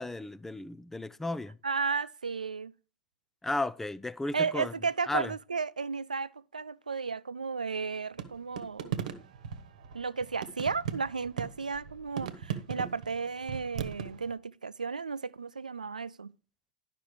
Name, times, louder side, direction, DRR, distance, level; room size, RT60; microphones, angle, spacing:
voice 1, 0.0-1.6 3.4-4.7 5.1-5.3, left 2 dB, 10° left, 0.5 m, -34 dB
voice 2, 1.6-2.7 4.3-9.0 9.9-16.3, right 5 dB, 85° right, 0.4 m, -34 dB
sound 1, 8.2-14.3, right 9 dB, 70° right, 1.1 m, -38 dB
11.5 x 5.8 x 4.8 m
figure-of-eight pair, 85°, 4 cm